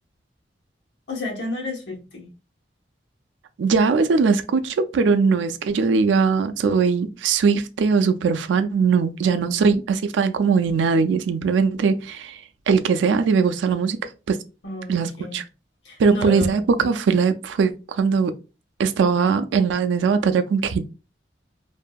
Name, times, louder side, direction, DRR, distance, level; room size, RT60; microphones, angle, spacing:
voice 1, 1.1-2.3 9.2-9.7 14.6-15.4 15.8-16.6, left 2 dB, 80° left, 0.9 m, -32 dB
voice 2, 3.6-12.4 12.7-14.0 14.3-14.4 14.9-15.4 16.0-18.3 18.8-20.8, right 5 dB, 85° right, 0.3 m, -20 dB
2.7 x 2.5 x 2.2 m
head